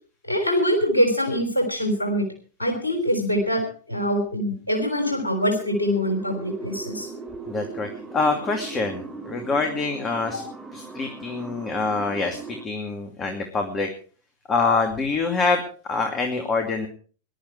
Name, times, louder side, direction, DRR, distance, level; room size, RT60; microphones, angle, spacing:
voice 1, 0.2-2.3 2.6-7.1 10.3-10.4, equal, 80° left, 3 dB, 3.6 m, -24 dB
sound 1, 5.1-12.6, right 3 dB, 15° right, 4.0 m, -38 dB
voice 2, 7.5-7.9 8.1-10.4 10.7-13.9 14.5-15.6 15.9-16.9, left 4 dB, 25° left, 4 dB, 2.6 m, -25 dB
20.5 x 12.0 x 4.7 m, 0.41 s
figure-of-eight pair, 90°, 0 cm